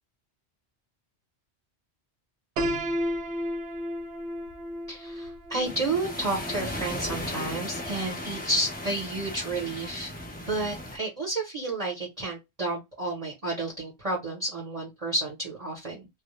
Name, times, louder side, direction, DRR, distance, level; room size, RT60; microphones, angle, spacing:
Piano, 2.6-8.4, equal, 80° right, 0.9 m, -34 dB
voice 1, 4.9-10.1 10.5-16.1, right 2 dB, 35° right, 0.8 m, -31 dB
sound 1, 5.6-11.0, left 1 dB, 10° left, 0.5 m, -36 dB
2.1 x 2.0 x 2.9 m
omnidirectional pair, 1.1 m